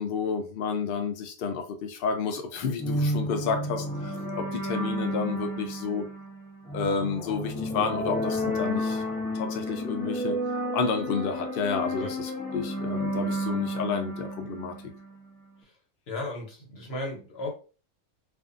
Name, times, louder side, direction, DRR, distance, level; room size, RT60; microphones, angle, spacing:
voice 1, 0.0-6.1 6.7-9.0 9.3-10.4 10.7-14.7, left 5 dB, 85° left, 5 dB, 0.5 m, -30 dB
sound 1, 2.8-15.3, equal, 10° left, 0.4 m, -31 dB
voice 2, 16.1-17.5, left 2 dB, 50° left, 0 dB, 1.1 m, -35 dB
2.6 x 2.5 x 2.4 m, 0.35 s
omnidirectional pair, 1.5 m